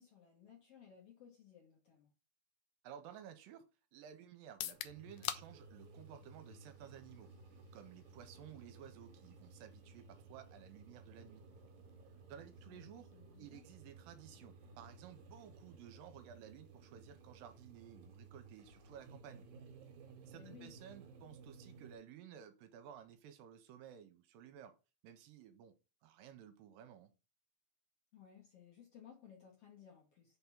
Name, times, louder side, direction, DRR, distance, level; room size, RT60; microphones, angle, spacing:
voice 1, 0.0-2.1 12.4-13.7 20.3-20.7 28.1-30.4, left 8 dB, 55° left, 0 dB, 1.8 m, -60 dB
voice 2, 2.8-3.6 3.9-7.3 7.7-11.4 12.3-13.1 13.4-19.5 20.3-24.7 25.0-25.8 26.0-27.1, right 9 dB, 80° right, 8 dB, 2.4 m, -55 dB
sound 1, 4.4-18.3, left 14 dB, 80° left, 2.2 m, -53 dB
sound 2, 4.7-22.0, right 3 dB, 65° right, 2.2 m, -58 dB
5.5 x 3.5 x 5.8 m, 0.31 s
omnidirectional pair, 4.1 m